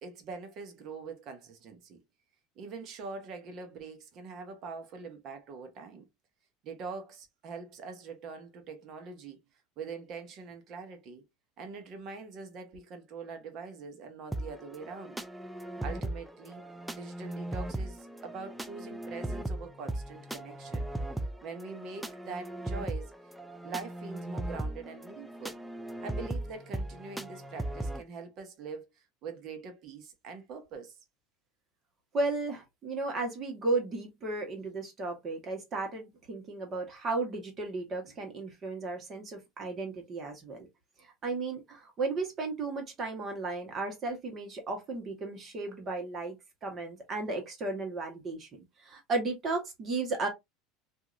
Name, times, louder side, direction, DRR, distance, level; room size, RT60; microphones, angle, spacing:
voice 1, 0.0-2.0 2.6-6.1 6.6-9.4 9.8-11.3 11.6-15.2 15.8-16.6 16.9-20.9 21.4-23.1 23.6-25.6 26.0-31.0, right 4 dB, 50° right, 1.0 m, -43 dB
sound 1, 14.3-28.0, right 1 dB, 5° right, 0.3 m, -38 dB
voice 2, 32.1-40.7 41.0-50.3, right 3 dB, 35° right, 1.4 m, -34 dB
2.8 x 2.7 x 2.5 m
supercardioid pair, 120°, 0 cm